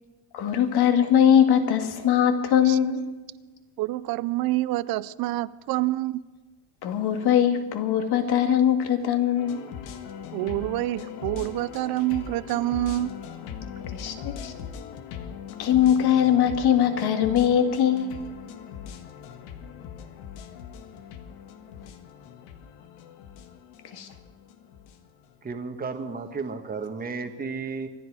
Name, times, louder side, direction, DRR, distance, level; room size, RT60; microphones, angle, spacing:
voice 1, 0.3-3.0 6.8-9.6 13.9-14.5 15.6-18.1 23.9-24.1, left 9 dB, 55° left, 2.0 m, -21 dB
voice 2, 3.8-6.2 10.3-13.1, right 16 dB, 55° right, 0.5 m, -27 dB
sound 1, 9.4-25.5, left 8 dB, 85° left, 1.6 m, -40 dB
voice 3, 25.4-27.9, right 4 dB, 20° right, 1.4 m, -33 dB
25.5 x 10.5 x 4.8 m
cardioid pair, 125°, 44 cm